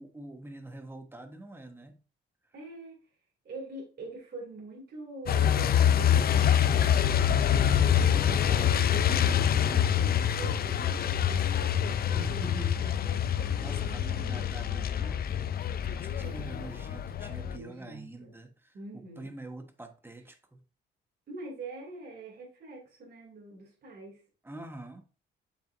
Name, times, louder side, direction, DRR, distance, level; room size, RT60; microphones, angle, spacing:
voice 1, 0.0-1.9 8.0-9.1 12.1-12.8 13.6-15.6 15.9-20.6 24.4-25.0, right 2 dB, 10° right, 1.2 m, -45 dB
voice 2, 2.5-2.9 3.4-11.7 12.1-13.6 14.2-14.4 16.2-16.6 17.5-18.3 18.7-19.3 21.3-24.2, right 2 dB, 55° right, 2.6 m, -44 dB
Truck, 5.3-17.6, left 9 dB, 50° left, 0.5 m, -26 dB
7.2 x 6.0 x 2.6 m
cardioid pair, 90°, 20 cm